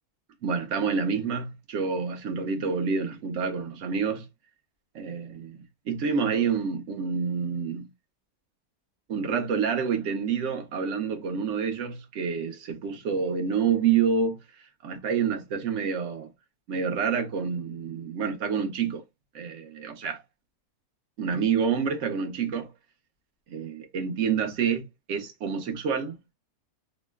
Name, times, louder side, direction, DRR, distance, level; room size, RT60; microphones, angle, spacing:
voice 1, 0.4-4.3 4.9-7.9 9.1-14.4 14.8-16.3 16.7-19.0 19.3-20.2 21.2-22.7 23.5-26.3, right 6 dB, 60° right, 1.0 m, -28 dB
3.0 x 2.1 x 3.3 m
omnidirectional pair, 1.6 m